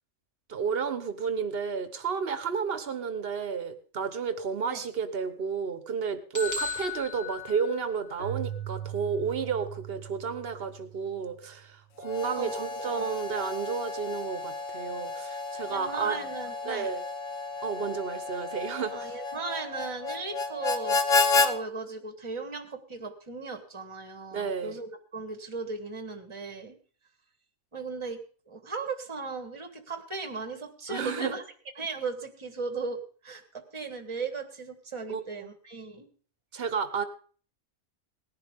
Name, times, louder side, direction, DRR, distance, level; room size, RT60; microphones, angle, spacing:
voice 1, 0.5-16.2 16.7-17.0 17.6-19.2 24.3-24.7 30.9-31.3 35.1-35.5 36.5-37.0, right 6 dB, 50° right, 10 dB, 1.3 m, -32 dB
sound 1, 6.3-8.3, left 4 dB, 15° left, 1.3 m, -36 dB
Keyboard (musical), 8.2-11.7, right 11 dB, 55° left, 4.7 m, -40 dB
Harmonica, 12.0-21.5, left 4 dB, 85° left, 1.3 m, -31 dB
voice 2, 12.3-13.2 15.7-16.9 18.9-26.7 27.7-31.4 31.8-36.1, right 4 dB, 25° right, 7 dB, 1.4 m, -37 dB
18.5 x 10.5 x 3.6 m, 0.42 s
omnidirectional pair, 1.3 m